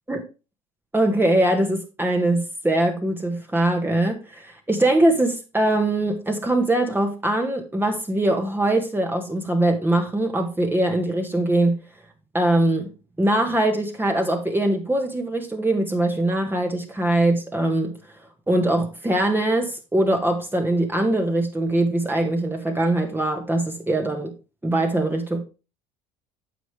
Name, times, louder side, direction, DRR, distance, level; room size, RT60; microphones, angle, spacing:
voice 1, 0.9-11.8 12.3-12.9 13.2-18.0 18.5-24.3 24.6-25.5, right 1 dB, 10° right, 1.6 m, -22 dB
9.3 x 6.2 x 3.3 m
hypercardioid pair, 75°, 18 cm